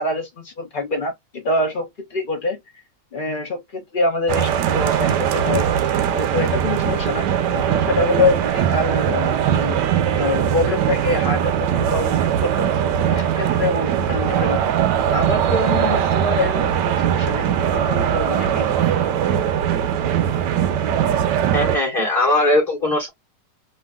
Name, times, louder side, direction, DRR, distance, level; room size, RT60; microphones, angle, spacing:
voice 1, 0.0-2.6 3.1-5.7 6.1-9.8 10.2-12.7 13.0-14.7 15.1-18.7, left 3 dB, 50° left, 0.6 m, -25 dB
sound 1, 4.3-21.8, right 9 dB, 75° right, 1.2 m, -20 dB
voice 2, 21.5-23.1, left 1 dB, 20° left, 1.1 m, -19 dB
3.0 x 2.5 x 2.3 m
omnidirectional pair, 1.9 m